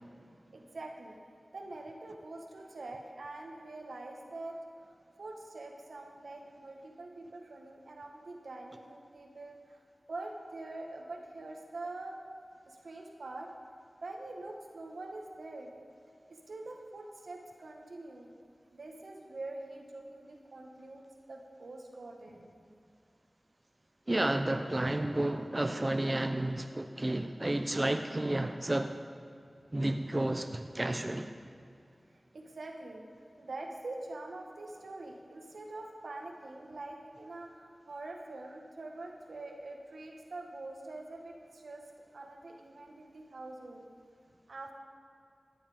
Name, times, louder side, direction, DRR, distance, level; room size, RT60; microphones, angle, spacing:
voice 1, 0.5-1.2 1.5-4.6 5.2-9.8 10.1-12.2 12.7-13.5 14.0-15.7 16.3-18.3 18.7-22.5 32.3-33.0 33.4-41.8 42.1-43.9 44.5-44.7, right 2 dB, 90° right, 2 dB, 1.6 m, -45 dB
voice 2, 24.1-29.0 29.7-31.3, right 1 dB, 35° right, 6 dB, 0.7 m, -31 dB
14.5 x 10.0 x 5.1 m, 2.4 s
cardioid pair, 45°, 0 cm